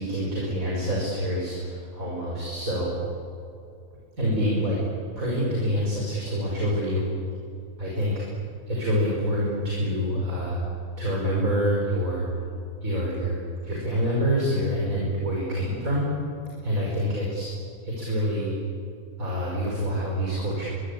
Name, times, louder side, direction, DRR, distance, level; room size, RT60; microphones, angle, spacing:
voice 1, 0.0-2.9 4.2-4.8 5.2-7.1 7.8-8.1 8.7-10.6 11.0-12.3 12.8-16.1 16.6-17.5 17.8-18.5 19.2-20.7, equal, 65° right, -4 dB, 5.7 m, -26 dB
24.0 x 23.5 x 8.6 m, 2.6 s
omnidirectional pair, 1.5 m